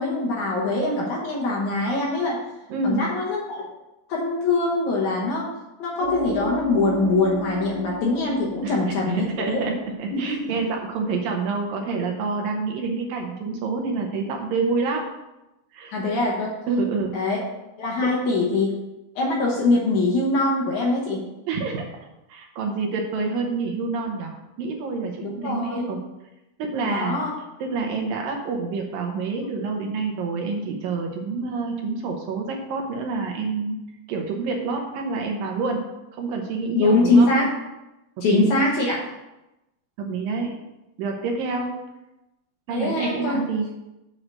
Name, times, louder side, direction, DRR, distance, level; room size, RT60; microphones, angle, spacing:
voice 1, 0.0-2.4 2.8-3.6 4.1-5.5 5.8-9.6 10.1-10.5 15.9-16.5 17.1-17.4 17.8-18.7 19.2-21.2 25.2-25.9 26.8-27.3 36.7-37.5 38.2-39.1 42.7-43.4, left 2 dB, 65° left, -2 dB, 2.1 m, -23 dB
voice 2, 2.7-3.0 8.6-8.8 9.1-15.0 15.7-16.3 16.7-17.1 18.0-18.1 21.5-21.8 22.3-24.3 24.6-26.0 26.6-27.2 27.6-33.8 34.1-35.8 36.1-37.3 38.2-38.5 40.0-40.5 41.0-41.8 42.7-43.7, right 4 dB, 70° right, 1 dB, 2.5 m, -27 dB
sound 1, 6.0-11.2, equal, 55° right, 2.3 m, -33 dB
7.6 x 4.7 x 6.6 m, 0.96 s
omnidirectional pair, 4.5 m